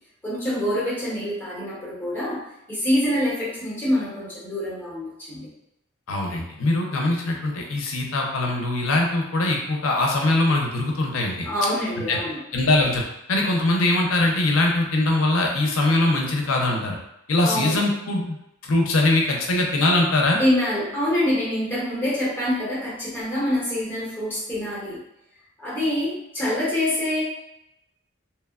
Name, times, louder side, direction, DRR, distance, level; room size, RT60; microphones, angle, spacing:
voice 1, 0.2-5.5 11.4-12.4 17.4-17.8 20.4-25.0 25.6-27.2, left 1 dB, 10° left, -9 dB, 1.0 m, -25 dB
voice 2, 6.1-11.5 12.1-12.2 12.5-13.0 13.3-17.0 17.3-18.4 18.7-20.4, left 2 dB, 75° left, 0 dB, 0.5 m, -22 dB
2.9 x 2.1 x 2.3 m, 0.83 s
head